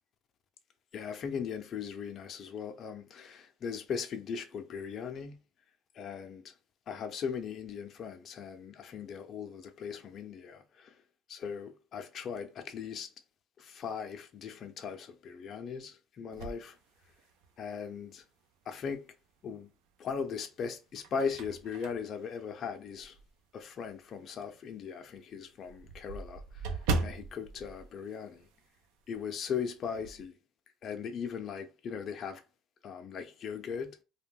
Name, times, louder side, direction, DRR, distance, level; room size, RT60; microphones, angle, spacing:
voice 1, 0.9-5.4 6.0-6.5 6.9-10.9 11.3-13.1 13.6-16.8 17.6-18.2 18.7-19.1 19.4-19.7 20.0-23.2 23.5-28.5 29.1-30.4 30.8-32.4 32.8-34.0, left 6 dB, 50° left, 0.5 m, -39 dB
sound 1, 16.3-17.6 18.2-18.3 19.7-20.3 20.7-23.4 23.8-24.0 24.3-24.4 24.7-24.8 25.0-28.8 29.1-29.3 29.6-30.2, right 3 dB, 85° right, 0.5 m, -38 dB
2.5 x 2.2 x 3.4 m
supercardioid pair, 80°, 0 cm